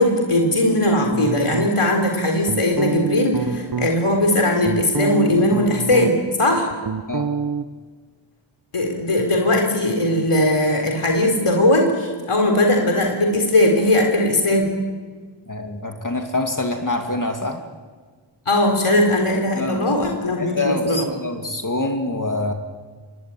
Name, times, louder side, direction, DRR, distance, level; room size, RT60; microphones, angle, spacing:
voice 1, 0.0-6.7 8.7-14.6 18.5-21.1, left 1 dB, 85° left, 2 dB, 4.0 m, -19 dB
sound 1, 1.1-2.0 2.4-3.9 4.4-6.3 6.6-7.6, right 6 dB, 45° right, 1.0 m, -26 dB
voice 2, 15.5-17.6 19.5-19.9 20.4-22.5, left 2 dB, 40° left, 4 dB, 2.5 m, -25 dB
24.5 x 19.5 x 9.9 m, 1.5 s
wide cardioid pair, 50°, 50 cm